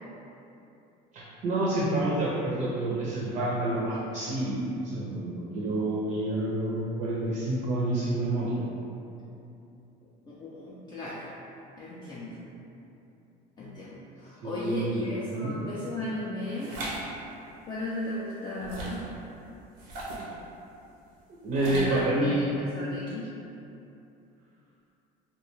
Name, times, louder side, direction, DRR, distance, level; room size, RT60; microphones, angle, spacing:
voice 1, 1.1-4.6 4.9-8.6 14.4-15.5 21.4-22.5, right 1 dB, 50° right, -5 dB, 0.5 m, -28 dB
voice 2, 10.3-11.3 11.8-12.4 13.6-16.8 17.7-19.1 21.6-22.4 22.7-23.3, left 1 dB, 25° left, -7 dB, 0.3 m, -36 dB
sound 1, 16.6-17.0 18.6-19.1 19.8-20.3 21.5-22.0, right 1 dB, 85° right, 0.6 m, -37 dB
2.2 x 2.2 x 3.0 m, 2.8 s
cardioid pair, 110°, 17 cm